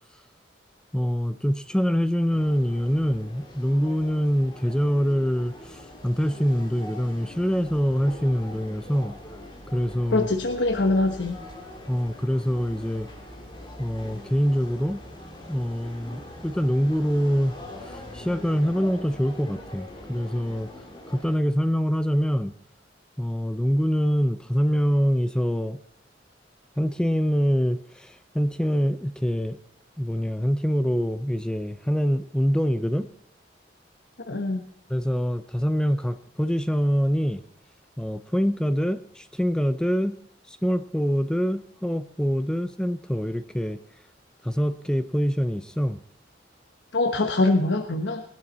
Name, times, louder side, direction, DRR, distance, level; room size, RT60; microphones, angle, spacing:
voice 1, 0.9-9.1 9.7-10.3 11.9-13.1 13.8-15.0 15.5-17.5 17.8-20.7 21.1-22.5 23.2-25.8 26.8-29.6 30.0-33.1 34.9-37.4 38.0-40.2 40.5-43.8 44.4-46.0, equal, 5° left, 11 dB, 0.5 m, -25 dB
sound 1, 2.3-21.4, left 1 dB, 25° left, 3.5 m, -43 dB
voice 2, 10.1-11.4 34.3-34.6 46.9-48.2, left 2 dB, 85° left, 5 dB, 1.2 m, -23 dB
19.5 x 12.0 x 4.2 m, 0.68 s
head